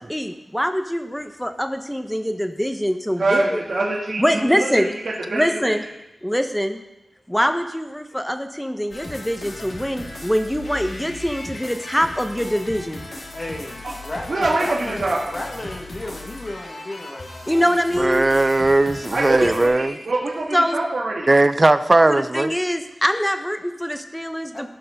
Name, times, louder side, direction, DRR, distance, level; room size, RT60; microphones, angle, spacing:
voice 1, 0.1-3.6 4.2-4.9 5.3-5.9 6.2-6.8 7.3-13.0 17.5-18.3 19.4-19.5 20.5-20.9 22.1-24.7, equal, 5° left, 1.0 m, -23 dB
voice 2, 3.2-4.8 5.3-5.7 13.8-13.9 14.3-15.2 19.1-21.3, right 2 dB, 75° right, 1.6 m, -24 dB
sound 1, 8.9-19.7, left 2 dB, 75° left, 2.0 m, -37 dB
voice 3, 13.3-18.1 24.5-24.7, left 1 dB, 45° left, 1.5 m, -34 dB
voice 4, 18.0-20.0 21.3-22.5, right 2 dB, 40° right, 0.5 m, -17 dB
15.0 x 5.8 x 3.7 m
cardioid pair, 45°, 0 cm